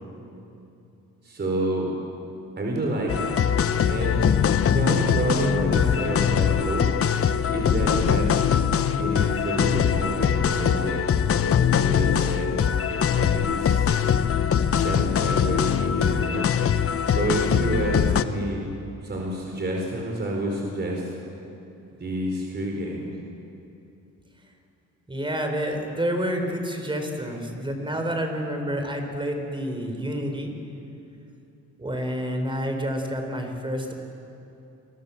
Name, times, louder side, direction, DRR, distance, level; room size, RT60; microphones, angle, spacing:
voice 1, 1.2-1.9 2.6-3.3 3.8-4.2 4.7-6.9 7.5-8.4 9.0-11.0 11.7-12.5 12.9-13.9 14.7-16.5 17.1-18.7 19.0-21.1 22.0-23.0, right 1 dB, 35° right, -1 dB, 5.0 m, -29 dB
sound 1, 3.1-18.2, left 8 dB, 50° left, 1.0 m, -22 dB
voice 2, 25.1-30.5 31.8-33.9, equal, 15° right, 4 dB, 5.1 m, -29 dB
28.5 x 24.0 x 7.5 m, 2.8 s
cardioid pair, 90°, 30 cm